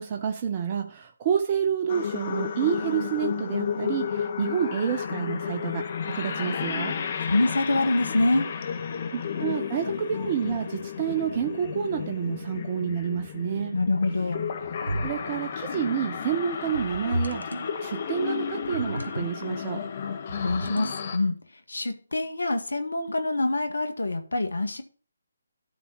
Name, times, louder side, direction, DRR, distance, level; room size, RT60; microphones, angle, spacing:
voice 1, 0.0-7.0 9.1-13.8 15.0-17.5 17.8-19.8, right 8 dB, 30° right, 0.9 m, -29 dB
sound 1, 1.9-21.2, left 7 dB, 40° left, 1.7 m, -32 dB
voice 2, 7.2-8.5 13.7-14.5 20.4-21.3 21.7-24.8, left 2 dB, 80° left, 2.1 m, -25 dB
sound 2, 14.9-15.4 16.7-17.7 18.6-19.3 20.3-21.1, equal, 85° right, 2.0 m, -33 dB
12.5 x 4.3 x 5.7 m
figure-of-eight pair, 150°, 0 cm